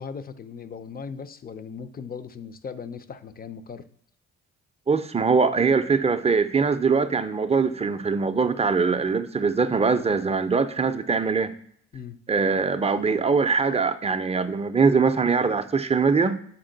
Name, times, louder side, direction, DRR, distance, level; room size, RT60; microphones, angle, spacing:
voice 1, 0.0-3.8 11.9-12.2, left 6 dB, 30° left, 0.5 m, -38 dB
voice 2, 4.9-11.5 12.3-16.4, right 5 dB, 20° right, 0.4 m, -22 dB
7.2 x 4.2 x 3.9 m
cardioid pair, 90°, 30 cm